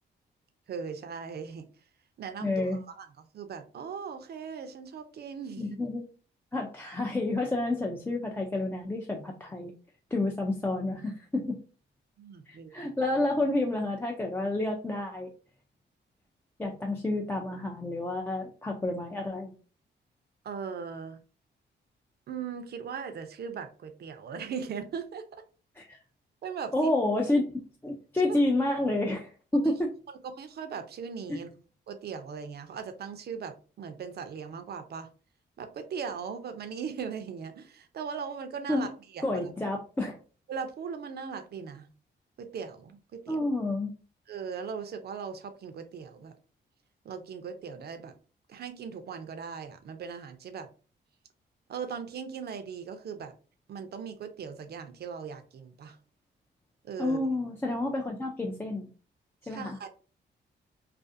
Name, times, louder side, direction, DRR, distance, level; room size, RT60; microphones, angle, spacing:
voice 1, 0.7-1.7 2.2-5.8 12.2-12.9 20.4-21.2 22.3-25.2 26.4-26.9 28.2-28.4 29.6-29.7 30.2-31.5 31.9-35.1 35.6-39.4 40.5-41.9 42.4-43.4 44.3-46.3 47.0-48.1 48.5-50.7 51.7-53.3 53.7-56.0 56.8-57.2 59.4-59.9, right 6 dB, 55° right, 8 dB, 0.5 m, -39 dB
voice 2, 2.4-2.8 5.6-6.0 6.5-9.7 10.1-11.6 12.5-15.3 16.6-19.5 25.8-26.0 26.7-27.5 27.8-29.9 31.3-31.4 38.7-38.9 39.2-40.2 43.3-43.9 57.0-58.9 59.5-59.8, left 2 dB, 10° left, 0 dB, 0.4 m, -29 dB
2.4 x 2.4 x 2.6 m, 0.37 s
cardioid pair, 85°, 19 cm